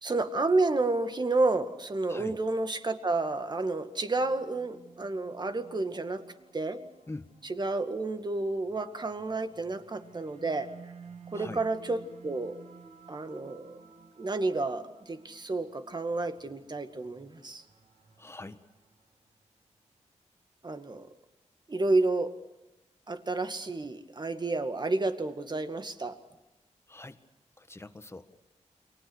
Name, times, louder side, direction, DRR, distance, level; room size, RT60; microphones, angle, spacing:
voice 1, 0.0-6.2 6.5-6.8 7.5-10.7 11.3-12.6 13.1-13.8 14.2-17.6 20.6-21.1 21.7-22.4 23.1-26.2, right 2 dB, 35° right, 9 dB, 2.1 m, -30 dB
sound 1, 4.1-19.4, right 5 dB, 70° right, 3.1 m, -54 dB
voice 2, 18.2-18.6 26.9-27.2 27.6-28.4, left 2 dB, 20° left, 10 dB, 1.7 m, -43 dB
29.0 x 24.0 x 6.4 m, 0.99 s
wide cardioid pair, 85°, 12 cm